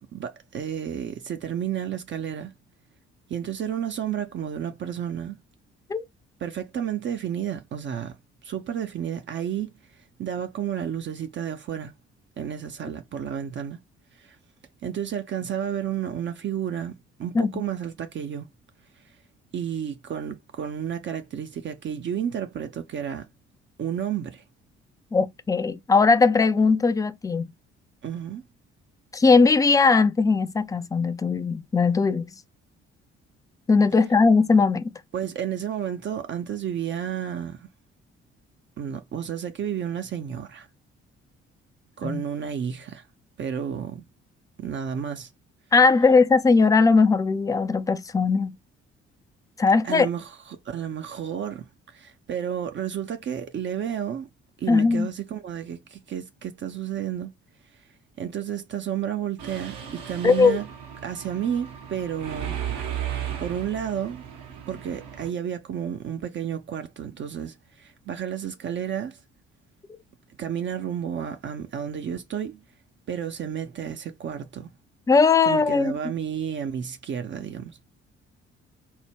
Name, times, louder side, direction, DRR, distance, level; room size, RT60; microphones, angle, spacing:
voice 1, 0.1-2.5 3.3-5.4 6.4-8.2 8.4-9.7 10.2-11.9 12.4-13.8 14.2-14.4 14.8-16.9 17.2-18.5 19.5-23.3 23.8-24.4 28.0-28.4 35.1-37.7 38.8-40.7 42.0-43.1 43.4-44.0 44.6-45.3 49.8-54.3 54.6-57.3 58.2-60.7 61.0-62.6 63.4-64.2 64.7-69.2 70.4-72.6 73.1-74.7 75.5-77.8, right 9 dB, 35° right, 0.5 m, -31 dB
voice 2, 25.1-27.5 29.1-32.3 33.7-34.9 42.0-42.2 45.7-48.6 49.6-50.1 54.7-55.1 60.2-60.6 75.1-75.9, left 4 dB, 10° left, 0.3 m, -19 dB
Mechanisms, 59.4-65.3, right 9 dB, 60° right, 0.9 m, -35 dB
4.3 x 2.1 x 3.3 m
figure-of-eight pair, 45°, 33 cm